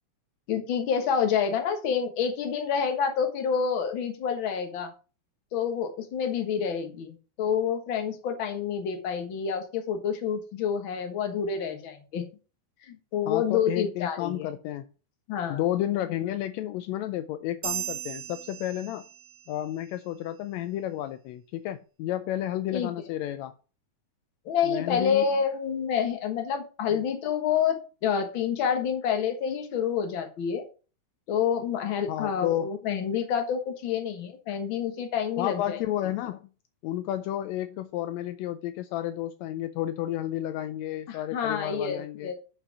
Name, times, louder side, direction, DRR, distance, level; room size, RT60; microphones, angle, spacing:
voice 1, 0.5-4.9 5.5-12.3 12.8-14.5 15.3-15.6 22.7-22.9 24.4-27.8 28.0-30.6 31.3-35.8 41.1-42.3, left 7 dB, 50° left, 5 dB, 1.7 m, -28 dB
voice 2, 13.3-14.9 15.5-19.0 19.5-23.5 24.6-25.3 26.9-27.0 32.1-32.7 35.4-36.5 36.8-42.3, left 13 dB, 85° left, 11 dB, 1.5 m, -31 dB
sound 1, 17.6-19.5, right 12 dB, 65° right, 2.1 m, -36 dB
7.2 x 5.0 x 5.9 m, 0.35 s
omnidirectional pair, 3.6 m